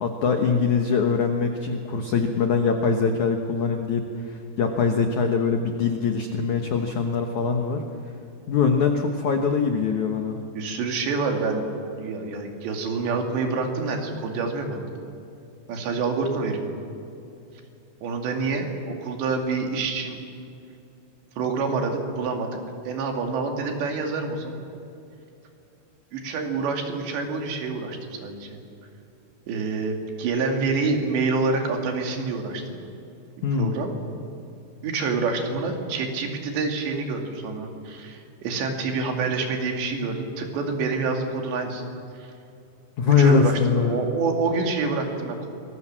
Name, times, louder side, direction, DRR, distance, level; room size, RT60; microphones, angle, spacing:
voice 1, 0.0-7.8 8.5-10.4 33.4-33.8 43.0-44.1, left 5 dB, 80° left, 4 dB, 1.7 m, -23 dB
voice 2, 10.5-11.7 12.0-14.9 15.7-16.6 18.0-20.2 21.4-22.6 22.8-24.6 26.1-28.6 29.5-32.8 33.5-33.9 34.8-41.8 42.2-42.3 43.1-45.5, right 4 dB, 70° right, 3 dB, 4.5 m, -27 dB
27.0 x 20.5 x 7.5 m, 2.6 s
omnidirectional pair, 5.5 m